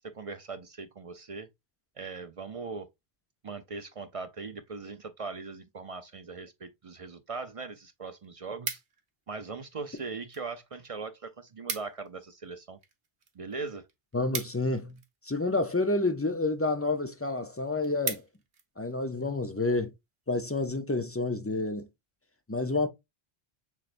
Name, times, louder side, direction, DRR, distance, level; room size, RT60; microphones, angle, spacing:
voice 1, 0.0-1.5 2.0-2.9 3.4-8.8 9.3-12.8 13.3-13.9, right 4 dB, 45° right, 0.4 m, -40 dB
sound 1, 7.5-7.6 7.9-9.2 9.9-10.5 10.8-10.9 11.1-11.2 11.5-12.1 12.4-15.3 16.0-16.4 16.9-17.0 17.3-17.4 17.7-18.7 19.1-19.4, right 6 dB, 80° right, 1.3 m, -39 dB
voice 2, 14.1-15.0 15.2-18.2 18.8-19.9 20.3-21.9 22.5-22.9, left 2 dB, 20° left, 0.3 m, -29 dB
6.7 x 3.2 x 2.5 m
omnidirectional pair, 1.1 m